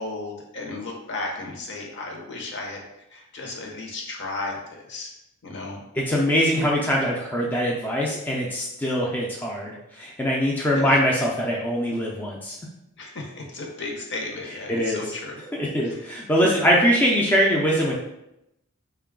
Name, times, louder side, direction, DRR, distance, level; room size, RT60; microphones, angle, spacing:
voice 1, 0.0-2.8 3.1-5.1 5.4-5.8 6.6-6.7 10.7-11.0 13.0-15.4 15.8-16.0 16.5-16.8, left 2 dB, 55° left, 0 dB, 0.7 m, -34 dB
voice 2, 5.9-12.6 14.7-15.1 15.5-18.0, equal, 10° left, -4 dB, 0.4 m, -22 dB
3.8 x 2.2 x 3.6 m, 0.86 s
head